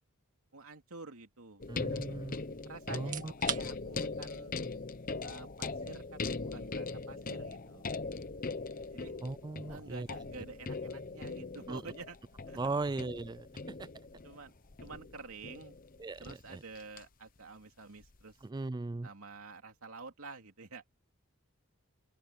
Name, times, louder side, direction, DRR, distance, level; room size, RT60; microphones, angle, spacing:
voice 1, 0.5-2.0 2.7-4.5 5.2-7.8 8.9-9.1 9.7-12.2 12.5-12.6 14.2-14.5 14.8-15.7 16.2-18.4 19.0-20.8, right 3 dB, 75° right, 2.6 m, -49 dB
sound 1, 1.6-17.0 18.0-18.2, left 3 dB, 40° left, 0.9 m, -40 dB
voice 2, 1.7-2.4 2.9-3.2 9.2-10.1 11.7-11.8 12.6-13.5 13.8-13.9 16.0-16.2 18.5-19.1, right 3 dB, 20° right, 0.3 m, -37 dB
sound 2, 3.0-17.8, right 8 dB, 35° right, 2.0 m, -50 dB
open air
head